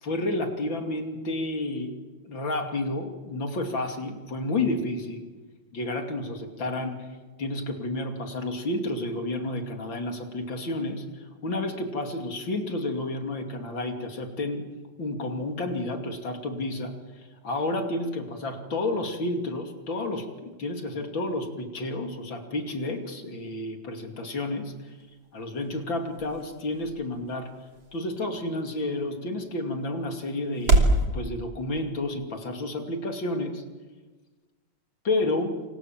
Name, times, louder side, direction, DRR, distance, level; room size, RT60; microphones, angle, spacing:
voice 1, 0.0-1.9 2.2-5.3 5.7-7.1 7.4-14.6 15.0-25.0 25.3-27.5 27.9-33.6 35.1-35.6, left 2 dB, 80° left, 4 dB, 3.5 m, -31 dB
sound 1, 24.8-31.0, right 2 dB, 85° right, 3.8 m, -29 dB
27.5 x 27.0 x 7.5 m, 1.3 s
omnidirectional pair, 2.1 m